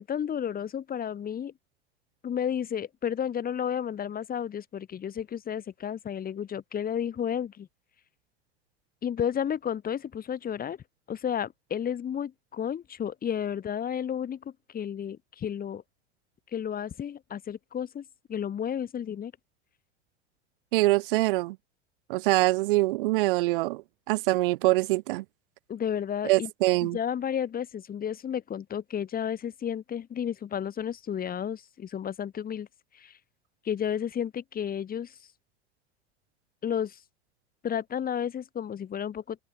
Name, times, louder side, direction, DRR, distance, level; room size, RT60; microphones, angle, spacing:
voice 1, 0.0-1.5 2.2-7.7 9.0-10.8 11.1-15.8 16.5-19.3 25.7-26.5 26.8-32.7 32.9-33.2 33.6-35.2 36.6-37.0 37.6-39.4, left 8 dB, 25° left, 6.3 m, -32 dB
voice 2, 20.7-21.6 22.1-25.2 26.2-27.0, right 20 dB, 50° right, 1.1 m, -24 dB
open air
figure-of-eight pair, 85°, 33 cm